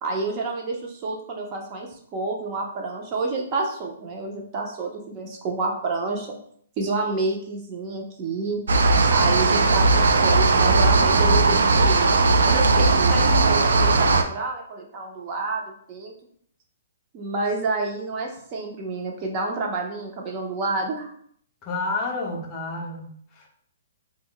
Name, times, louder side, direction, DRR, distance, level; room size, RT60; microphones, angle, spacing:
voice 1, 0.0-6.4 6.8-8.6 9.1-16.1 17.1-21.1, right 3 dB, 30° right, 1 dB, 0.5 m, -29 dB
sound 1, 8.7-14.2, right 3 dB, 85° right, 0.3 m, -18 dB
voice 2, 21.6-23.5, left 3 dB, 25° left, 0 dB, 0.5 m, -30 dB
2.1 x 2.0 x 3.8 m, 0.63 s
hypercardioid pair, 155°, 0 cm